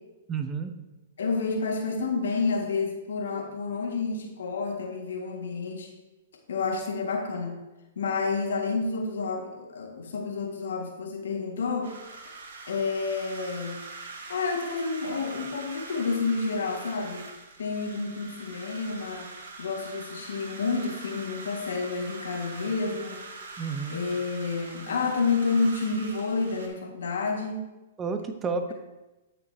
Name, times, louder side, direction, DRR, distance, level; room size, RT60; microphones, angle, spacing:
voice 1, 0.3-0.7 23.6-24.0 28.0-28.7, right 5 dB, 20° right, 7 dB, 0.7 m, -31 dB
voice 2, 1.2-5.9 6.5-7.5 8.0-11.9 12.7-13.8 14.3-17.3 17.6-19.3 19.6-23.2 23.9-27.6, left 4 dB, 75° left, 1 dB, 1.8 m, -29 dB
sound 1, 11.8-26.7, right 3 dB, 75° right, 1.7 m, -43 dB
13.0 x 5.6 x 2.8 m, 1.1 s
hypercardioid pair, 130°, 0 cm